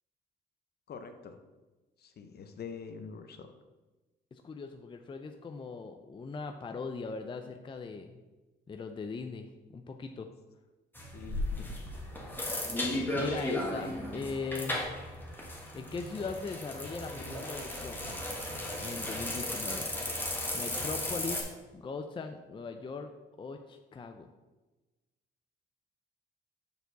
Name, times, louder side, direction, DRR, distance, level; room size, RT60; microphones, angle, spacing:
voice 1, 0.9-1.4 2.0-3.5 11.1-11.7, left 6 dB, 55° left, 7 dB, 0.8 m, -45 dB
voice 2, 4.3-8.2 8.7-9.5 9.7-10.3 13.0-15.0 15.7-19.9 20.5-23.1 23.4-24.3, left 4 dB, 25° left, 5 dB, 0.4 m, -40 dB
sound 1, 10.9-21.4, left 1 dB, 10° left, 1.4 m, -35 dB
6.9 x 4.5 x 4.0 m, 1.2 s
cardioid pair, 90°, 20 cm